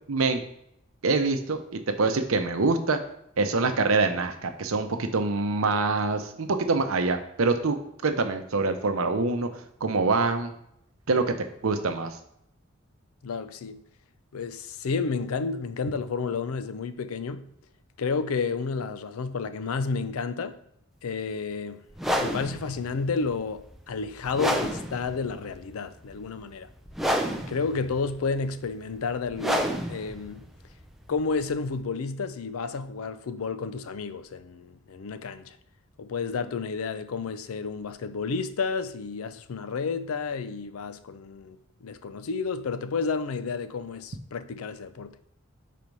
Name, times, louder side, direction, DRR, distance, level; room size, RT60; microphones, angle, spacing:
voice 1, 0.1-0.4 1.0-3.0 3.4-7.8 8.0-10.5 11.1-11.4 11.6-12.2, right 3 dB, 75° right, 0.7 m, -25 dB
voice 2, 13.2-13.8 14.3-17.5 18.0-20.6 21.0-21.8 22.2-26.7 27.5-30.5 31.1-35.6 36.0-45.2, left 4 dB, 85° left, 0.4 m, -31 dB
sound 1, 21.9-31.8, equal, ahead, 0.4 m, -31 dB
4.6 x 4.2 x 5.3 m
head